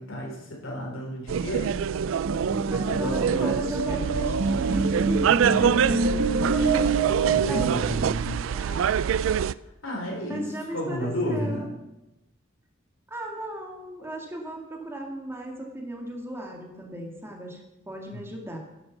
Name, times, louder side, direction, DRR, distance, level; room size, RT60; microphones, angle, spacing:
voice 1, 0.0-1.7 2.7-4.1 5.5-6.0 6.5-6.8 7.2-8.4 9.8-11.6 18.1-18.2, equal, 80° left, -1 dB, 4.3 m, -32 dB
sound 1, 1.3-9.5, right 8 dB, 70° right, 0.3 m, -26 dB
sound 2, 2.2-7.8, right 4 dB, 85° right, 0.9 m, -26 dB
voice 2, 2.6-5.3 6.0-6.8 7.2-8.2 8.5-8.8 10.3-11.7 13.1-17.6 17.9-18.6, right 1 dB, 10° right, 0 dB, 2.0 m, -35 dB
10.5 x 8.0 x 7.3 m, 0.93 s
head